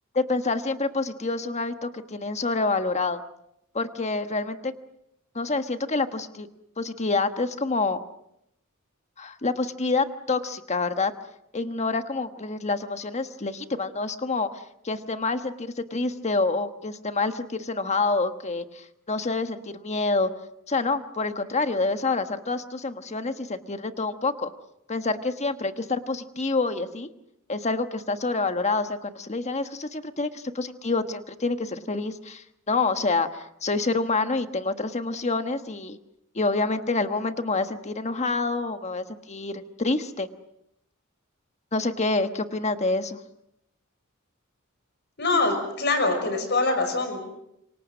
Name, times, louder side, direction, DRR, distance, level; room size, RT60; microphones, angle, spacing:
voice 1, 0.1-3.2 3.7-4.7 5.3-6.5 6.8-8.0 9.2-11.1 11.5-20.3 20.7-24.5 24.9-27.1 27.5-36.0 36.3-40.3 41.7-43.2, left 3 dB, 30° left, 8 dB, 1.3 m, -27 dB
voice 2, 45.2-47.2, left 3 dB, 55° left, 7 dB, 6.0 m, -24 dB
27.5 x 24.5 x 6.2 m, 0.79 s
head